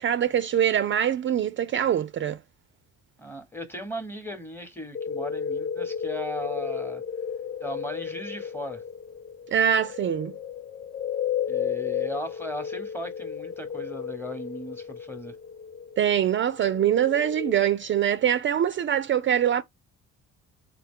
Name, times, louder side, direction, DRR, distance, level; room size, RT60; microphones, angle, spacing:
voice 1, 0.0-2.4 9.5-10.3 16.0-19.6, right 9 dB, 40° right, 0.4 m, -23 dB
voice 2, 3.2-7.0 7.6-8.8 11.5-15.4, equal, 5° left, 1.0 m, -37 dB
sound 1, 4.9-17.5, left 8 dB, 25° left, 0.5 m, -33 dB
3.9 x 2.1 x 3.6 m
cardioid pair, 90°, 30 cm